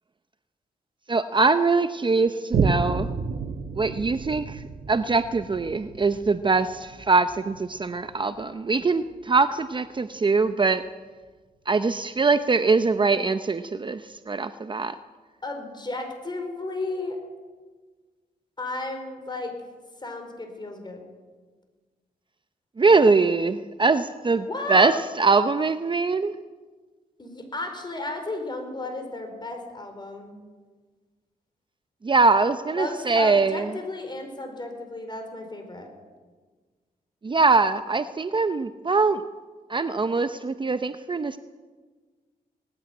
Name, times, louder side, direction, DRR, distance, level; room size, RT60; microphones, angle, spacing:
voice 1, 1.1-3.1 3.8-4.6 4.9-10.8 11.7-14.0 14.3-14.9 22.8-26.3 32.0-33.7 37.2-39.2 39.7-41.4, right 4 dB, 30° right, 11 dB, 0.7 m, -22 dB
Boom, 2.5-9.4 10.0-10.1, right 5 dB, 85° right, 1.3 m, -31 dB
voice 2, 15.4-17.2 18.6-19.5 20.0-21.0 24.5-24.9 27.2-30.3 32.8-35.9, left 2 dB, 30° left, 5 dB, 4.7 m, -33 dB
18.5 x 16.0 x 9.4 m, 1.4 s
wide cardioid pair, 100°, 16 cm